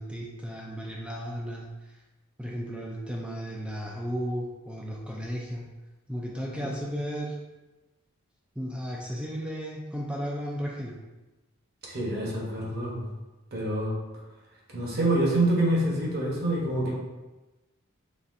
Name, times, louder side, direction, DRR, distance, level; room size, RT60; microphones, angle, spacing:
voice 1, 0.0-1.7 2.4-5.6 6.1-7.3 8.6-10.9, equal, 5° right, -3 dB, 0.3 m, -34 dB
voice 2, 11.8-13.1 13.5-13.9 14.7-16.9, right 1 dB, 45° right, -3 dB, 0.9 m, -26 dB
4.0 x 3.3 x 2.5 m, 1.1 s
head